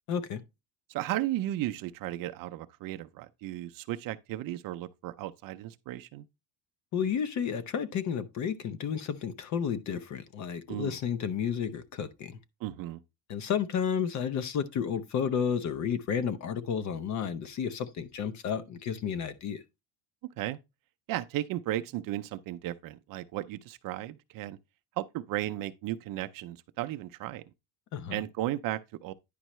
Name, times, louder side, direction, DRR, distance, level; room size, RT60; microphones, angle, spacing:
voice 1, 0.1-0.4 6.9-12.4 13.3-19.6 27.9-28.2, left 7 dB, 40° left, 0.7 m, -32 dB
voice 2, 0.9-6.3 10.7-11.0 12.6-13.0 20.4-20.6 21.1-24.6 25.0-27.4 28.1-29.1, right 14 dB, 50° right, 0.5 m, -35 dB
10.0 x 5.4 x 3.0 m
cardioid pair, 160°, 45 cm